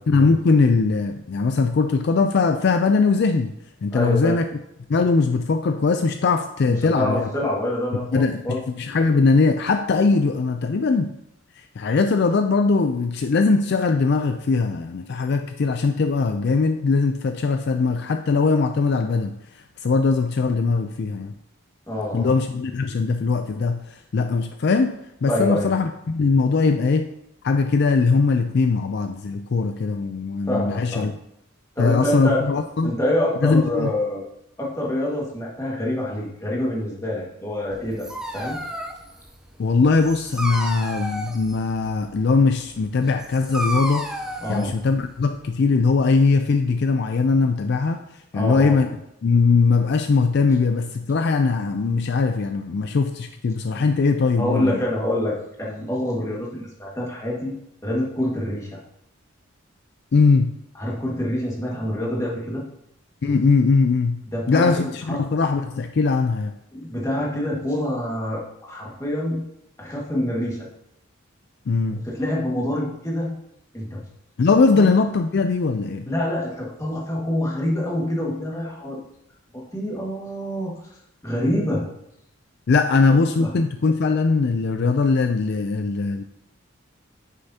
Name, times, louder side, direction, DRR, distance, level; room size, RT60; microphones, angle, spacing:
voice 1, 0.0-3.5 3.8-4.5 4.9-7.3 8.1-11.1 11.8-19.4 19.8-21.3 22.1-27.1 27.4-31.1 31.8-32.9 33.4-33.9 39.6-44.1 44.5-48.0 48.3-48.9 49.2-54.8 60.1-60.5 63.2-64.2 64.5-66.5 71.7-72.0 74.4-76.1 82.7-86.2, left 4 dB, 55° left, 7 dB, 0.4 m, -20 dB
voice 2, 3.9-4.4 6.7-8.6 21.9-22.3 25.3-25.7 30.5-31.1 31.8-32.5 32.8-34.2 34.6-38.1 38.3-38.6 44.4-44.7 48.3-48.8 54.4-57.5 57.8-58.8 60.8-62.6 64.3-65.2 66.7-69.4 69.8-70.7 71.9-73.3 73.7-74.0 74.7-74.8 76.1-79.0 79.5-80.7 81.2-81.8 83.1-83.5, left 1 dB, 15° left, -4 dB, 1.7 m, -26 dB
Dog, 37.7-45.6, right 1 dB, 5° right, 0.7 m, -33 dB
9.2 x 6.7 x 2.8 m, 0.79 s
head